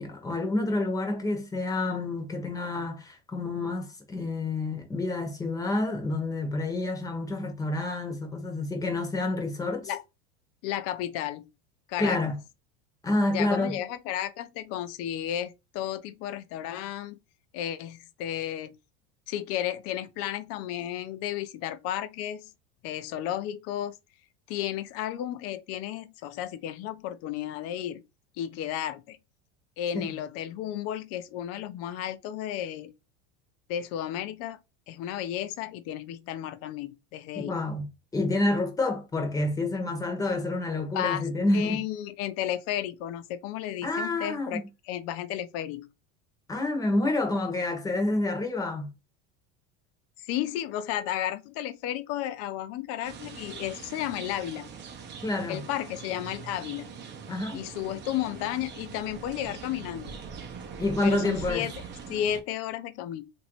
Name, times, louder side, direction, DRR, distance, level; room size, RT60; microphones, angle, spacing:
voice 1, 0.0-9.9 12.0-12.4 13.0-13.8 29.9-30.1 37.4-41.8 43.8-44.6 46.5-48.9 55.2-55.6 57.3-57.6 60.8-61.7, left 2 dB, 10° left, 0.9 m, -28 dB
voice 2, 10.6-11.4 11.9-12.2 13.3-17.2 17.5-18.7 19.3-22.5 22.8-23.9 24.5-28.0 28.4-29.2 29.8-32.9 33.7-34.6 34.9-37.6 40.9-41.2 41.5-45.9 50.2-54.7 55.5-56.9 57.5-60.1 61.0-61.7 62.1-63.2, left 11 dB, 50° left, 0.5 m, -33 dB
sound 1, 53.0-62.4, right 6 dB, 35° right, 0.7 m, -42 dB
2.9 x 2.6 x 3.0 m
supercardioid pair, 135°, 32 cm